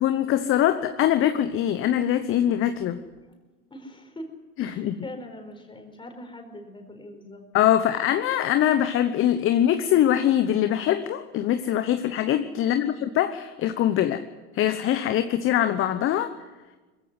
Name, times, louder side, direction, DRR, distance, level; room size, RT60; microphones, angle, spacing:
voice 1, 0.0-3.0 4.6-5.0 7.5-14.2 14.5-16.3, left 11 dB, 25° left, 10 dB, 0.9 m, -23 dB
voice 2, 3.5-4.3 4.6-7.4 12.6-13.0, left 1 dB, 10° left, 4 dB, 4.3 m, -42 dB
21.0 x 15.5 x 9.6 m, 1.3 s
hypercardioid pair, 110°, 47 cm